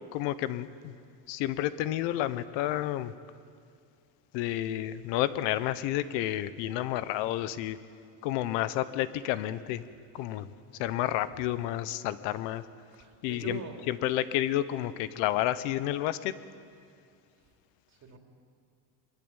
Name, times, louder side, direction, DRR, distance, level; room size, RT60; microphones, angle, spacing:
voice 1, 0.1-1.0 1.3-3.1 4.3-7.8 8.2-9.8 10.1-10.5 10.8-12.6 13.2-13.6 13.9-16.3, left 13 dB, 80° left, 14 dB, 1.2 m, -30 dB
voice 2, 10.1-10.5 13.0-13.8 17.9-18.2, right 7 dB, 40° right, 3 dB, 3.1 m, -43 dB
23.0 x 21.5 x 8.9 m, 2.3 s
cardioid pair, 170°, 43 cm